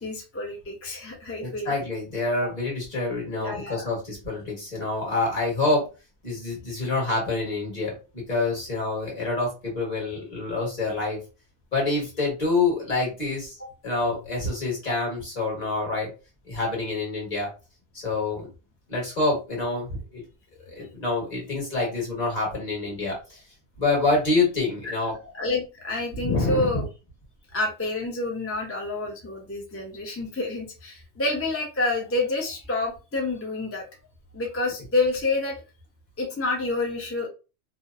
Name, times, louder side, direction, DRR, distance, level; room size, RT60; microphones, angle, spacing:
voice 1, 0.0-1.7 2.4-2.5 3.4-3.9 13.6-13.7 21.8-21.9 24.8-24.9 25.4-26.9 27.5-33.8 34.3-35.6 36.2-37.3, left 2 dB, 25° left, -1 dB, 0.3 m, -28 dB
voice 2, 1.4-5.9 6.2-11.2 11.7-13.6 13.8-16.1 16.5-17.5 18.0-18.5 18.9-20.2 20.7-23.4 23.8-25.2 26.2-26.8, left 3 dB, 40° left, -3 dB, 1.3 m, -27 dB
2.8 x 2.0 x 2.3 m, 0.31 s
omnidirectional pair, 1.1 m